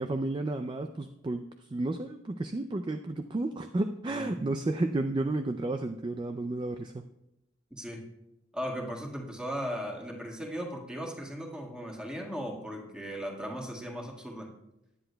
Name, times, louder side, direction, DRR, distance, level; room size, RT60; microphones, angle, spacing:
voice 1, 0.0-7.0, right 2 dB, 25° right, 7 dB, 0.4 m, -32 dB
voice 2, 4.1-4.5 7.7-8.1 8.5-14.5, equal, 5° right, 0 dB, 1.6 m, -37 dB
18.0 x 9.9 x 2.2 m, 0.87 s
head